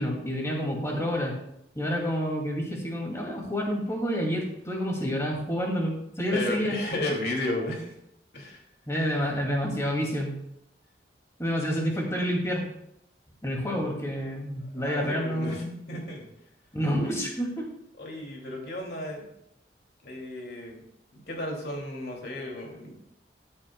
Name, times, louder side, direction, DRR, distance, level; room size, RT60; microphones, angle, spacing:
voice 1, 0.0-1.3 1.7-6.8 8.9-10.3 11.4-12.7 13.4-15.8 16.7-17.7, equal, 15° left, -1 dB, 2.5 m, -29 dB
voice 2, 6.3-8.0 8.3-8.6 13.7-13.8 14.6-16.3 17.0-17.1 18.0-19.3 20.0-20.8 21.1-23.0, left 1 dB, 60° left, 0 dB, 2.7 m, -34 dB
14.5 x 8.7 x 2.3 m, 0.77 s
head